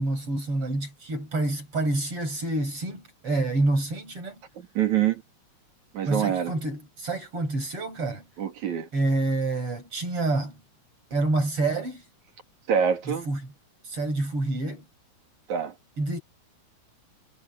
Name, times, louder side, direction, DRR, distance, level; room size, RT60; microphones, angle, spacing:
voice 1, 0.0-4.4 6.1-8.2 8.9-10.6 11.1-12.0 13.1-13.4 13.9-14.8 16.0-16.2, right 2 dB, 45° right, 7.0 m, -27 dB
voice 2, 4.6-5.2 5.9-6.5 8.4-8.9 12.7-13.3 15.5-15.7, right 8 dB, 70° right, 3.8 m, -25 dB
omnidirectional pair, 3.5 m